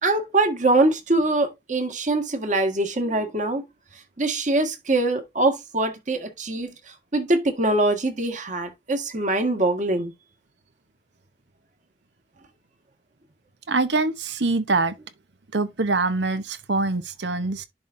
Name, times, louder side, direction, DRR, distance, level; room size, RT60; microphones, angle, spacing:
voice 1, 0.0-3.6 4.2-6.7 7.1-10.1, right 2 dB, 45° right, 1.8 m, -23 dB
voice 2, 13.7-15.0 15.5-17.6, right 3 dB, 85° right, 1.0 m, -24 dB
11.0 x 3.8 x 2.6 m
head